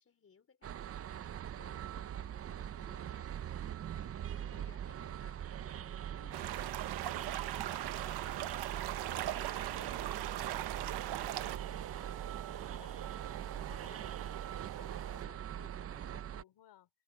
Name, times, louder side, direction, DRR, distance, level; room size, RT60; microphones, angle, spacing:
voice 1, 0.0-3.3 3.6-10.1, left 6 dB, 35° left, 4.5 m, -63 dB
sound 1, 0.6-16.4, right 10 dB, 35° right, 0.5 m, -42 dB
voice 2, 4.5-4.8 11.9-13.2 13.5-16.9, left 12 dB, 75° left, 3.7 m, -61 dB
sound 2, 6.3-11.6, right 13 dB, 65° right, 0.9 m, -39 dB
sound 3, 9.0-15.3, right 13 dB, 85° right, 2.4 m, -47 dB
cardioid pair, 125°, 41 cm